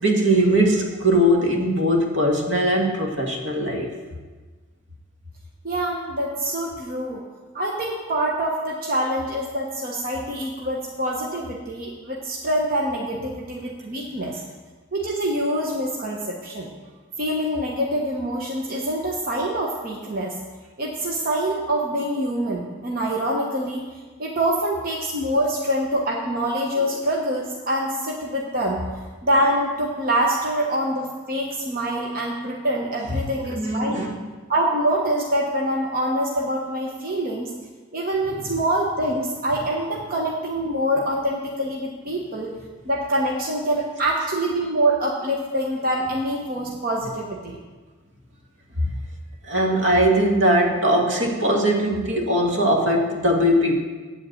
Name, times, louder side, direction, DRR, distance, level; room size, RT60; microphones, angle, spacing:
voice 1, 0.0-3.9 33.5-34.2 48.8-48.9 49.5-53.8, equal, 70° right, 1 dB, 1.7 m, -20 dB
voice 2, 5.6-7.2 7.5-14.4 14.9-16.7 17.2-20.3 20.8-23.8 24.2-28.8 29.2-34.1 34.5-37.5 37.9-42.5 42.9-47.6, right 1 dB, 45° right, -1 dB, 1.1 m, -25 dB
8.6 x 7.9 x 7.7 m, 1.4 s
head